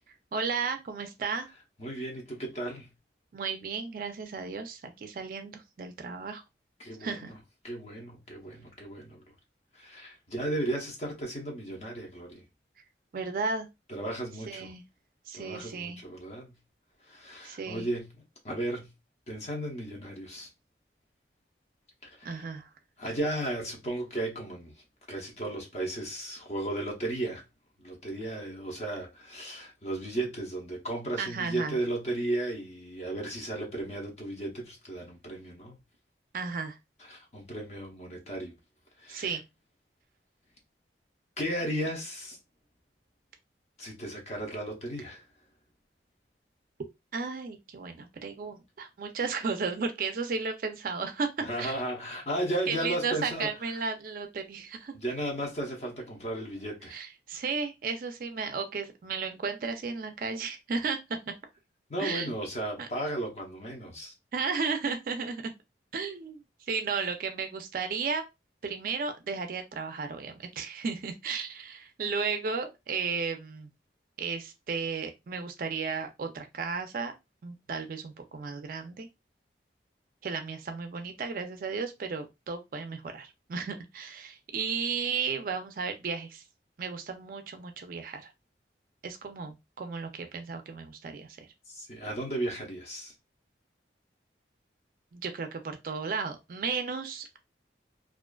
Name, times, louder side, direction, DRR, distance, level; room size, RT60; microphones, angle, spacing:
voice 1, 0.3-1.5 3.3-6.4 7.0-7.3 13.1-13.7 14.5-14.8 15.3-16.0 17.4-17.9 22.2-22.7 31.2-31.8 36.3-36.8 39.1-39.4 47.1-51.3 51.6-51.7 52.7-54.9 56.9-61.0 61.3-61.4 62.0-62.3 62.8-62.9 64.3-65.5 65.9-68.3 68.6-73.7 74.2-77.1 77.4-79.1 80.2-86.4 86.8-88.3 89.0-91.3 95.1-97.4, right 5 dB, 50° right, 0.4 m, -34 dB
voice 2, 1.8-2.9 6.8-7.4 7.6-9.2 9.7-12.5 13.9-14.7 15.3-16.6 17.0-18.9 19.3-20.5 22.0-22.4 23.0-24.7 25.1-27.4 27.8-35.8 37.0-38.5 39.0-39.4 41.4-42.4 43.8-45.3 51.4-53.8 54.9-57.0 61.9-64.1 91.7-93.1, right 1 dB, 35° left, 0.7 m, -35 dB
2.4 x 2.3 x 2.2 m
head